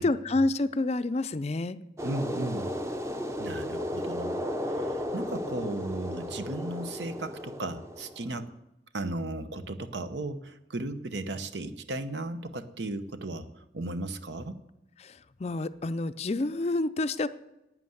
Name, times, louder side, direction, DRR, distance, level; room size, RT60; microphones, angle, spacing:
voice 1, 0.0-1.8 15.0-15.1 15.4-17.3, left 2 dB, 35° left, 13 dB, 0.4 m, -28 dB
sound 1, 2.0-8.3, equal, 15° right, 0.7 m, -34 dB
voice 2, 2.0-2.7 3.4-4.4 4.7-8.5 8.9-14.6, right 2 dB, 75° right, 11 dB, 0.9 m, -35 dB
11.0 x 9.2 x 7.8 m, 0.92 s
head